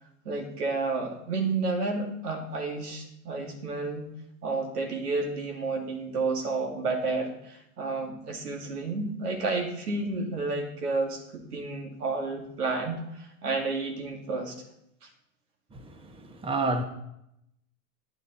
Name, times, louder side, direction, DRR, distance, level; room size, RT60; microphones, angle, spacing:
voice 1, 0.2-4.1 4.4-14.6 15.0-15.1, right 3 dB, 85° right, 2.5 m, -31 dB
voice 2, 15.7-16.8, right 2 dB, 10° right, 1.0 m, -30 dB
9.7 x 9.5 x 4.2 m
hypercardioid pair, 110°, 45 cm